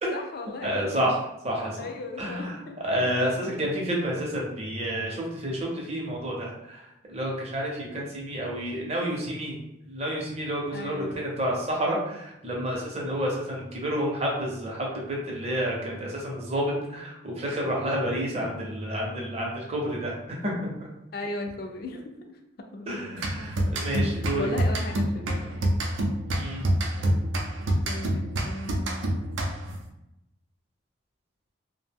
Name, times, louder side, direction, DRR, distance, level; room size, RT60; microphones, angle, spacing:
voice 1, 0.1-1.1 1.8-2.7 4.3-4.4 10.7-11.3 21.1-22.4 22.7-23.5 24.0-25.6 27.8-29.2, left 2 dB, 50° left, 4 dB, 0.4 m, -37 dB
voice 2, 0.6-1.9 2.2-2.6 2.8-6.8 7.1-9.5 9.9-20.2 20.4-20.9 22.9-24.5 26.4-26.7, equal, 30° right, -2 dB, 0.6 m, -29 dB
sound 1, 23.2-29.8, right 1 dB, 75° right, 0.4 m, -27 dB
2.5 x 2.1 x 3.4 m, 0.88 s
head